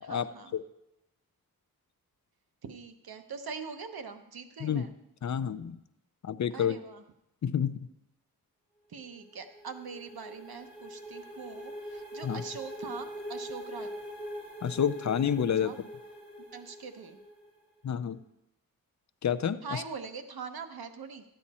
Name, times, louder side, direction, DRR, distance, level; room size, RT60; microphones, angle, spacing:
voice 1, 0.0-0.5 2.6-4.9 6.5-7.0 8.9-13.9 15.6-15.8 16.5-17.2 19.6-21.2, right 5 dB, 85° right, 7 dB, 1.0 m, -42 dB
voice 2, 5.2-5.8 6.2-6.8 7.4-7.8 12.2-12.4 14.6-15.7 17.8-18.2 19.2-19.8, left 8 dB, 50° left, 13 dB, 0.5 m, -29 dB
sound 1, 9.0-17.7, equal, 5° left, 3.9 m, -43 dB
13.0 x 9.0 x 4.2 m, 0.88 s
wide cardioid pair, 130°, 36 cm